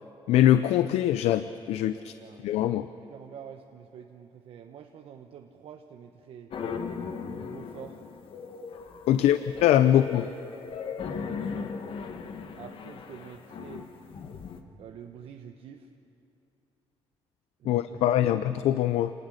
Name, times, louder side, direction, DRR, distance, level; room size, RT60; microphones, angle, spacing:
voice 1, 0.3-2.1 2.4-2.9 9.1-10.3 17.7-19.1, left 12 dB, 90° left, 12 dB, 0.6 m, -23 dB
voice 2, 1.8-2.5 2.8-6.5 7.3-8.0 9.1-9.3 9.8-9.9 11.0-11.7 12.6-13.8 14.8-15.9 17.6-18.3, right 8 dB, 70° right, 4 dB, 1.1 m, -47 dB
sound 1, 6.5-14.6, left 5 dB, 60° left, 1.5 m, -38 dB
28.0 x 19.0 x 6.6 m, 2.8 s
cardioid pair, 110°, 10 cm